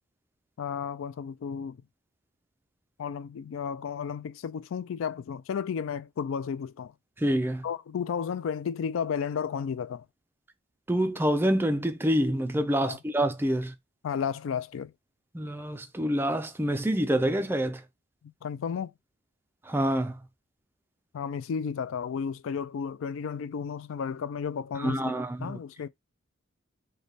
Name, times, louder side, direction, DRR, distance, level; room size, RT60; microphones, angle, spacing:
voice 1, 0.6-1.8 3.0-6.9 7.6-10.0 12.8-13.0 14.0-14.9 18.4-18.9 21.1-25.1 25.4-25.9, left 7 dB, 75° left, 0.3 m, -33 dB
voice 2, 7.2-7.6 10.9-13.7 15.3-17.8 19.7-20.2 24.8-25.6, right 1 dB, 10° right, 0.3 m, -27 dB
3.2 x 2.2 x 3.9 m
head